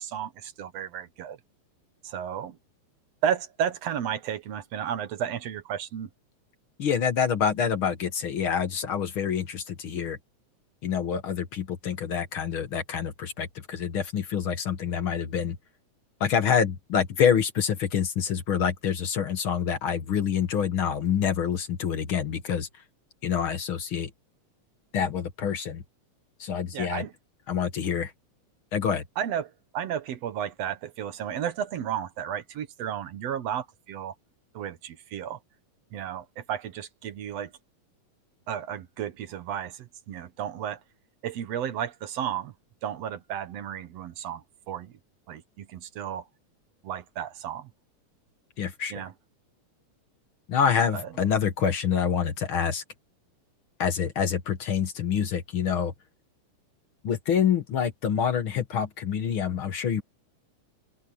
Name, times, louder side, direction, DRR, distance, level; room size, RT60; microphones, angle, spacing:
voice 1, 0.0-1.4 2.0-2.6 3.2-6.1 26.7-27.1 29.2-34.1 34.5-35.4 35.9-37.5 38.5-40.8 41.2-42.5 42.8-44.9 45.3-46.3 46.8-47.7 48.9-49.1 50.9-51.1, right 9 dB, 65° right, 1.9 m, -33 dB
voice 2, 6.8-10.2 10.8-15.6 16.2-22.7 23.2-24.1 24.9-25.8 26.4-27.0 27.5-28.1 28.7-29.0 48.6-49.0 50.5-52.8 53.8-55.9 57.0-60.0, left 7 dB, 55° left, 1.7 m, -26 dB
open air
omnidirectional pair, 3.7 m